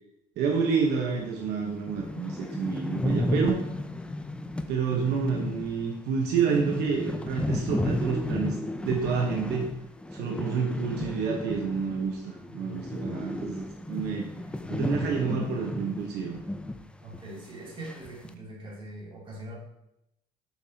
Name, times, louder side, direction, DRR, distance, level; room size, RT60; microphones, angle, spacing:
voice 1, 0.4-3.6 4.7-8.6 8.8-9.7 10.1-14.3 14.7-16.4, right 5 dB, 80° right, 0 dB, 1.1 m, -29 dB
sound 1, 1.2-1.3 1.6-1.7 1.9-12.1 12.4-16.8 17.1-17.2 17.8-18.3, left 1 dB, 5° left, 0.4 m, -33 dB
voice 2, 17.0-19.6, right 1 dB, 30° right, -4 dB, 2.5 m, -42 dB
6.9 x 6.1 x 2.8 m, 0.84 s
cardioid pair, 110°, 17 cm